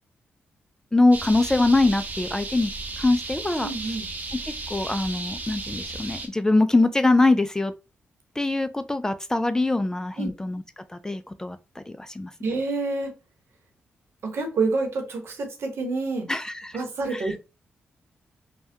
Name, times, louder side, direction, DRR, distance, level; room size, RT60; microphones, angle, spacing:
voice 1, 0.9-3.7 4.4-7.7 8.4-12.3 16.3-16.8 17.1-17.3, left 2 dB, 15° left, 0.3 m, -23 dB
sound 1, 1.1-6.3, right 3 dB, 40° right, 0.8 m, -34 dB
voice 2, 3.6-4.1 10.2-10.3 12.4-13.1 14.2-16.3 16.7-17.4, right 3 dB, 70° right, 0.9 m, -28 dB
3.3 x 2.2 x 2.6 m
cardioid pair, 60°, 4 cm